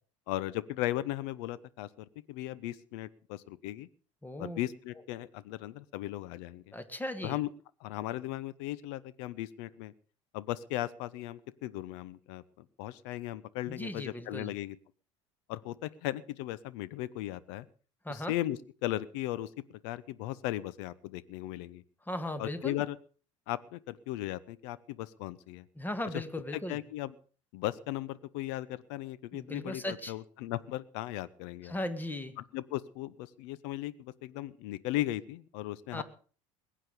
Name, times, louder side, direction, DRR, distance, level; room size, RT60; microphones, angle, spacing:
voice 1, 0.3-3.9 4.4-6.7 7.2-7.5 7.8-9.9 10.3-14.8 15.5-17.7 18.1-21.8 22.4-23.0 23.5-25.6 26.7-27.1 27.5-31.8 32.5-36.0, left 15 dB, 65° left, 18 dB, 0.9 m, -37 dB
voice 2, 4.2-4.6 6.7-7.4 13.7-14.5 18.0-18.3 22.1-22.8 25.8-26.8 29.3-30.1 31.6-32.3 35.9-36.0, left 1 dB, 10° left, 11 dB, 1.9 m, -37 dB
21.0 x 8.9 x 5.2 m, 0.41 s
hypercardioid pair, 70°, 16 cm